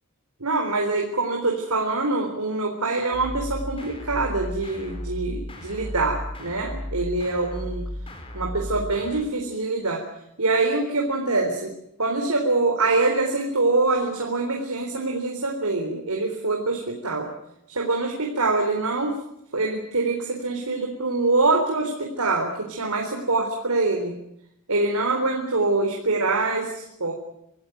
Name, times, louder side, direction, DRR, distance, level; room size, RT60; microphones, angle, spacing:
voice 1, 0.4-7.8 8.3-10.0 10.4-11.7 12.0-17.3 17.7-19.1 19.5-24.1 24.7-27.1, right 3 dB, 90° right, 1 dB, 4.1 m, -24 dB
sound 1, 3.1-9.2, left 1 dB, 25° left, 4.3 m, -34 dB
26.5 x 15.0 x 9.4 m, 0.78 s
head